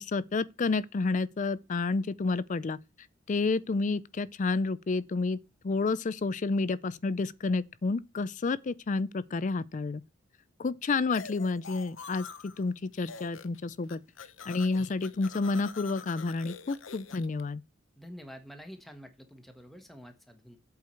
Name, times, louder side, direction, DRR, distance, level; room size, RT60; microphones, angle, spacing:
voice 1, 0.0-2.8 3.3-5.4 5.6-10.0 10.6-14.0 14.5-17.6, left 3 dB, 40° left, 0.4 m, -30 dB
sound 1, 11.1-12.6 12.9-13.6 13.8-17.4, left 6 dB, 75° left, 0.9 m, -46 dB
voice 2, 18.0-20.6, equal, ahead, 1.3 m, -48 dB
8.2 x 4.7 x 6.9 m
head